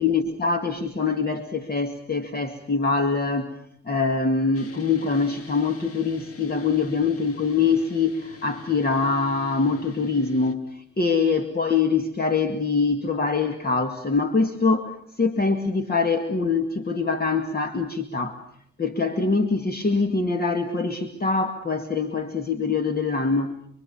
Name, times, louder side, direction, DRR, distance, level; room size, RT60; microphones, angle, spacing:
voice 1, 0.0-3.5 3.8-18.4 18.8-23.6, left 4 dB, 30° left, 6 dB, 2.2 m, -24 dB
sound 1, 4.5-10.6, left 2 dB, 50° left, 2.3 m, -42 dB
27.5 x 23.5 x 7.2 m, 0.68 s
cardioid pair, 90°, 30 cm